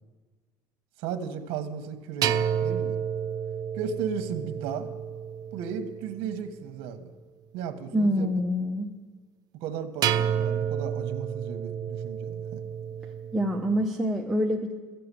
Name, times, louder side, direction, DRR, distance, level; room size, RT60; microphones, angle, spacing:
voice 1, 1.0-3.0 3.7-4.9 5.5-7.1 7.5-8.3 9.6-12.6, right 7 dB, 70° right, 7 dB, 1.3 m, -35 dB
sound 1, 2.2-6.5 10.0-13.9, right 8 dB, 40° right, 0.5 m, -30 dB
voice 2, 7.9-8.9 13.3-14.7, equal, 5° right, -2 dB, 0.7 m, -26 dB
13.5 x 6.9 x 8.4 m, 1.4 s
cardioid pair, 140°, 10 cm